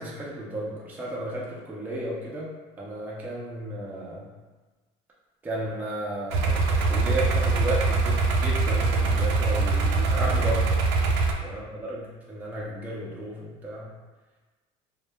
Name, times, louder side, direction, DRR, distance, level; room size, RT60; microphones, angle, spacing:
voice 1, 0.0-2.5 2.8-4.3 5.4-10.8 11.4-13.9, right 1 dB, 10° right, -5 dB, 0.4 m, -33 dB
sound 1, 6.3-11.3, right 3 dB, 80° right, 0.4 m, -23 dB
2.1 x 2.0 x 3.3 m, 1.2 s
cardioid pair, 135°, 14 cm